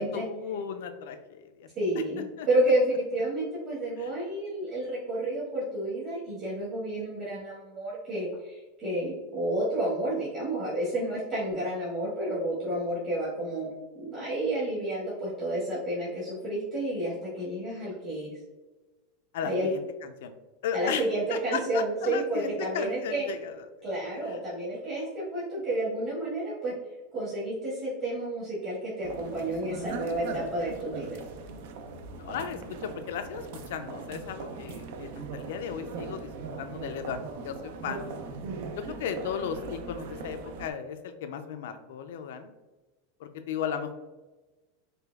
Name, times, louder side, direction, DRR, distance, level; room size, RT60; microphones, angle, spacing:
voice 1, 0.0-1.7 2.4-2.5 4.0-4.1 19.3-19.8 20.2-20.3 20.6-21.0 21.3-23.7 24.2-24.4 32.2-38.1 39.0-42.5 43.2-44.0, left 7 dB, 75° left, 8 dB, 0.4 m, -35 dB
voice 2, 1.7-13.7 13.9-18.3 19.4-19.7 20.7-23.3 23.8-26.7 27.1-31.2, right 1 dB, 35° right, -10 dB, 1.4 m, -30 dB
sound 1, 29.0-40.7, right 4 dB, 65° right, 0.4 m, -40 dB
5.0 x 2.3 x 2.3 m, 1.2 s
supercardioid pair, 150°, 0 cm